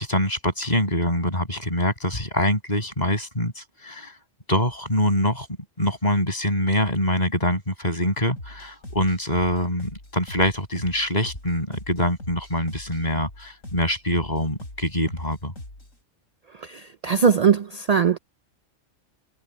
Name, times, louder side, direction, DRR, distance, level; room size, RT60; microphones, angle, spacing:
voice 1, 0.0-4.2 4.5-5.5 5.8-15.5, left 1 dB, 30° left, 7.6 m, -24 dB
sound 1, 8.4-16.0, left 1 dB, 85° left, 8.6 m, -42 dB
voice 2, 17.0-18.2, right 6 dB, 65° right, 0.3 m, -19 dB
omnidirectional pair, 1.3 m